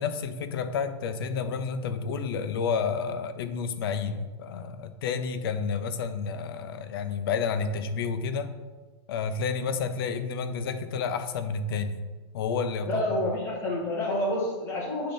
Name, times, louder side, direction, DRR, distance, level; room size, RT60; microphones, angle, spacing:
voice 1, 0.0-8.5 9.1-12.0 12.3-13.0, left 5 dB, 55° left, 10 dB, 0.6 m, -30 dB
voice 2, 12.9-15.1, left 1 dB, 15° left, -4 dB, 1.6 m, -28 dB
8.6 x 3.8 x 3.8 m, 1.3 s
supercardioid pair, 170°, 15 cm